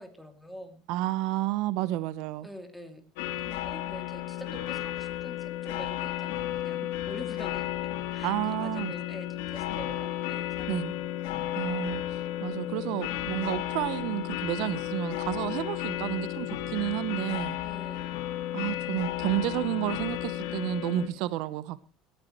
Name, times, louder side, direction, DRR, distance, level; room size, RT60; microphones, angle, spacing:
voice 1, 0.0-0.8 2.4-3.1 3.4-11.1 17.6-18.2 21.0-21.2, equal, ahead, 2.7 m, -46 dB
voice 2, 0.9-2.5 8.2-8.9 10.7-10.9 11.5-12.0 12.4-17.6 18.5-21.8, right 15 dB, 65° right, 0.9 m, -31 dB
sound 1, 3.2-21.1, left 13 dB, 80° left, 3.3 m, -33 dB
19.0 x 14.0 x 3.1 m
cardioid pair, 145°, 0 cm